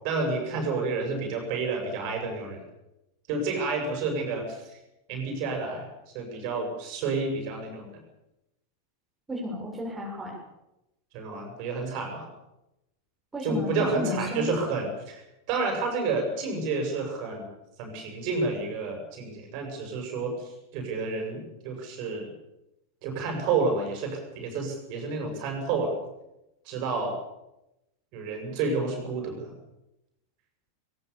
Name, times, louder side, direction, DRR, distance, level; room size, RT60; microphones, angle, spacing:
voice 1, 0.0-2.6 3.3-4.8 5.1-5.9 6.1-7.9 11.1-12.3 13.4-15.2 15.5-17.5 17.8-21.4 21.6-22.3 23.0-26.0 26.6-27.2 28.1-29.5, right 3 dB, 45° right, 3 dB, 7.5 m, -30 dB
voice 2, 9.3-10.4 13.3-14.5, equal, 10° right, -2 dB, 6.8 m, -33 dB
21.5 x 21.0 x 7.2 m, 0.92 s
figure-of-eight pair, 90°, 0 cm